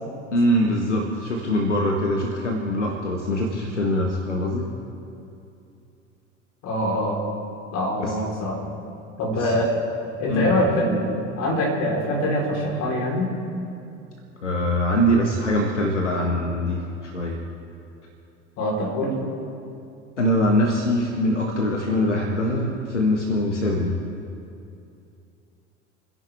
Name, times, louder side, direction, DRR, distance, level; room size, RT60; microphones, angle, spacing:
voice 1, 0.3-4.7 8.0-8.2 9.3-9.5 10.3-10.5 14.4-17.4 20.2-24.0, left 1 dB, 80° left, 1 dB, 1.6 m, -23 dB
voice 2, 6.6-7.2 7.7-8.7 9.2-9.8 10.2-13.3 18.6-19.2, left 1 dB, 45° left, -1 dB, 4.1 m, -24 dB
30.0 x 10.5 x 3.5 m, 2.6 s
figure-of-eight pair, 70°, 36 cm